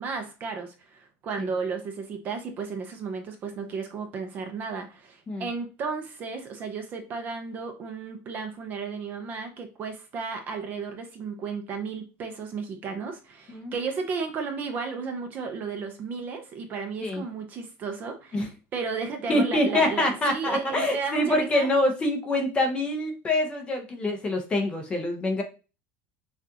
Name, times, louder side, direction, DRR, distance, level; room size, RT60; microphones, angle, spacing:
voice 1, 0.0-21.7, right 5 dB, 30° right, 5 dB, 0.6 m, -34 dB
voice 2, 19.3-25.4, left 1 dB, 15° left, 3 dB, 0.8 m, -25 dB
6.1 x 2.5 x 2.8 m, 0.31 s
cardioid pair, 180°, 6 cm